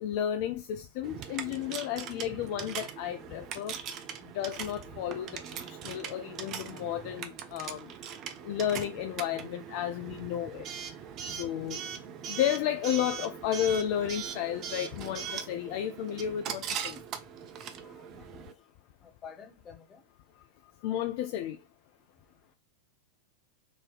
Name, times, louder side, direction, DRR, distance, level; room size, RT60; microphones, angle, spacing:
voice 1, 0.0-3.8 4.3-7.9 8.4-10.7 11.4-11.8 12.3-17.0 20.8-21.6, left 10 dB, 45° left, 0.3 m, -32 dB
Coin (dropping) / Alarm, 1.0-18.5, right 8 dB, 35° right, 0.5 m, -40 dB
voice 2, 17.8-18.2 18.5-18.6 19.0-20.0, left 6 dB, 25° left, 0.8 m, -50 dB
3.8 x 2.7 x 3.2 m
figure-of-eight pair, 90°, 0 cm